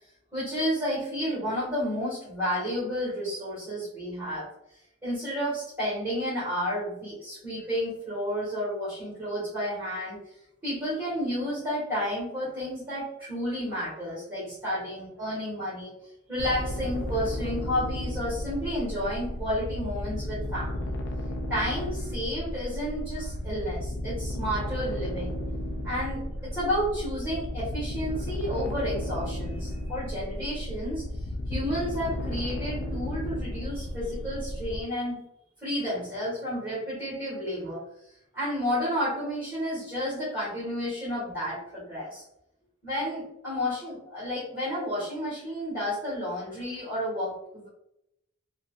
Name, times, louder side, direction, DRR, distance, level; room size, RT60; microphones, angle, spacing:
voice 1, 0.3-4.5 5.0-10.2 10.6-15.9 16.3-20.9 21.5-25.4 25.8-31.0 31.5-35.2 35.6-42.2 42.8-47.7, equal, 10° right, -10 dB, 1.4 m, -31 dB
sound 1, 16.4-34.8, left 1 dB, 55° left, 0.4 m, -33 dB
3.8 x 2.1 x 2.3 m, 0.81 s
head